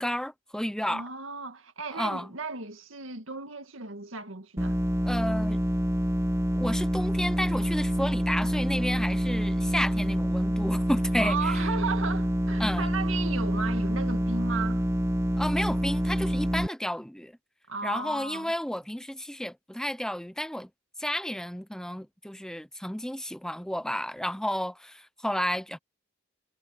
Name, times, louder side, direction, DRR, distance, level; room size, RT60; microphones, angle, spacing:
voice 1, 0.0-1.1 1.9-2.3 5.0-5.6 6.5-11.6 12.6-12.9 15.4-17.3 17.8-20.7 21.0-25.8, equal, 5° left, 0.8 m, -32 dB
voice 2, 0.9-4.8 11.2-14.8 17.7-18.5, right 4 dB, 85° right, 2.0 m, -35 dB
sound 1, 4.6-16.7, equal, 15° right, 1.4 m, -27 dB
head